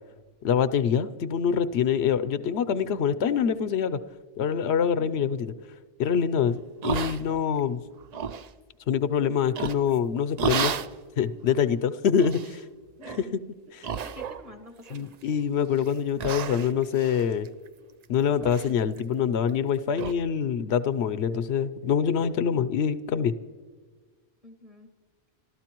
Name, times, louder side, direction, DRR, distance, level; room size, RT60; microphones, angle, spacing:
voice 1, 0.4-4.0 4.4-5.5 6.0-7.8 8.9-10.7 11.2-12.6 13.1-13.3 13.7-13.9 14.9-17.5 18.1-23.3, left 7 dB, 80° left, 13 dB, 0.9 m, -25 dB
sound 1, 6.8-7.6 8.0-8.5 9.5-10.0 10.4-10.9 11.5-11.6 12.2-12.6 13.0-13.3 13.8-14.5 14.9-15.4 15.8-15.9 16.2-18.0 18.4-18.7 19.0-19.1 19.5-19.6 20.0-20.1, right 7 dB, 55° right, 0.5 m, -32 dB
voice 2, 13.0-13.4 14.0-15.2 24.4-24.9, left 2 dB, 35° right, 5 dB, 1.6 m, -48 dB
27.0 x 13.5 x 3.0 m, 1.5 s
omnidirectional pair, 1.1 m